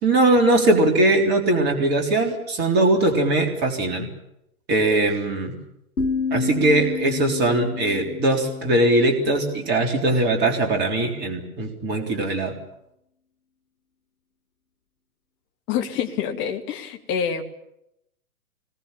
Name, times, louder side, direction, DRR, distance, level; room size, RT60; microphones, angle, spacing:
voice 1, 0.0-4.1 4.7-5.5 6.3-12.5, right 2 dB, 25° right, 3 dB, 3.6 m, -20 dB
sound 1, 6.0-9.8, left 5 dB, 70° left, 2.0 m, -30 dB
voice 2, 15.7-17.4, left 8 dB, 25° left, 4 dB, 2.4 m, -26 dB
25.5 x 21.0 x 7.4 m, 0.81 s
figure-of-eight pair, 120°, 44 cm